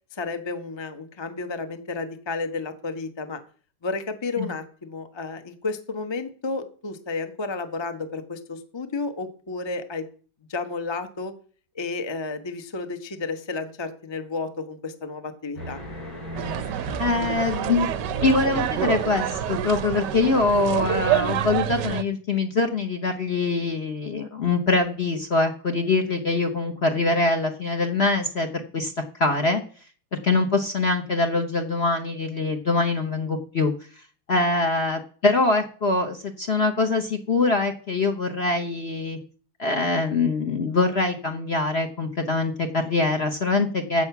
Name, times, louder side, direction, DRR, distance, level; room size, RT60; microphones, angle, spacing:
voice 1, 0.1-3.4 3.8-10.1 10.5-11.3 11.7-15.8, left 3 dB, 25° left, 7 dB, 0.5 m, -32 dB
sound 1, 15.6-21.5, left 1 dB, 80° left, 8.0 m, -39 dB
sound 2, 16.4-22.0, right 11 dB, 70° right, 1.0 m, -27 dB
voice 2, 17.0-17.9 18.2-28.9 29.2-29.6 30.1-33.7 34.3-39.2 39.6-44.0, left 3 dB, 45° left, 5 dB, 0.9 m, -23 dB
15.5 x 6.4 x 5.9 m, 0.43 s
omnidirectional pair, 2.4 m